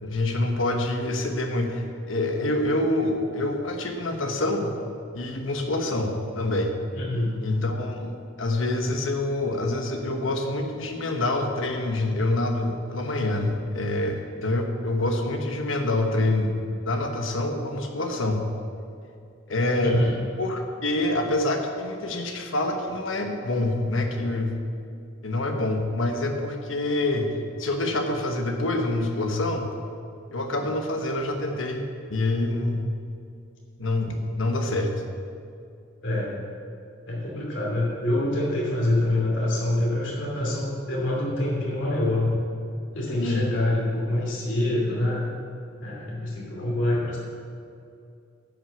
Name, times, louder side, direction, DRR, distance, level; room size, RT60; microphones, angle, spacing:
voice 1, 0.0-4.8 5.1-6.7 7.4-16.5 16.8-18.5 19.5-20.0 20.4-24.6 25.2-27.3 27.6-29.8 30.3-31.8 32.1-32.9 33.8-35.0 43.1-43.5, left 2 dB, 90° left, 3 dB, 1.3 m, -26 dB
voice 2, 6.9-7.4 19.8-20.1 36.0-36.4 37.1-42.4 42.9-45.3 45.8-47.2, left 1 dB, 70° left, -4 dB, 2.7 m, -26 dB
10.5 x 6.2 x 7.0 m, 2.4 s
head